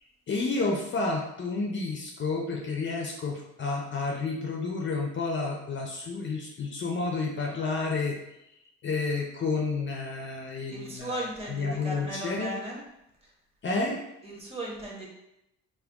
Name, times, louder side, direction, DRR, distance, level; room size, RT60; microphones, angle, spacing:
voice 1, 0.3-8.2 8.8-12.5 13.6-14.0, left 3 dB, 40° left, 0 dB, 0.5 m, -30 dB
voice 2, 10.7-12.8 14.2-15.1, right 1 dB, 20° right, -3 dB, 1.2 m, -36 dB
3.6 x 2.2 x 3.4 m, 0.84 s
cardioid pair, 90°, 30 cm